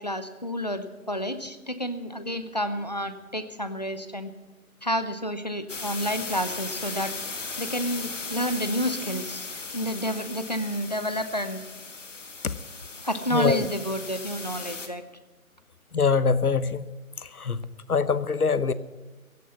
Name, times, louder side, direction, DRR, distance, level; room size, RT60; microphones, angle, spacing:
voice 1, 0.0-4.3 4.8-7.1 7.6-9.5 9.7-11.6 13.0-15.0, equal, 30° left, 11 dB, 0.7 m, -30 dB
sound 1, 5.7-14.9, left 4 dB, 55° left, 1.8 m, -37 dB
voice 2, 13.3-13.7 15.9-16.9 17.2-17.6 17.9-18.7, left 5 dB, 85° left, 15 dB, 1.0 m, -24 dB
16.0 x 9.7 x 8.0 m, 1.2 s
figure-of-eight pair, 160°, 43 cm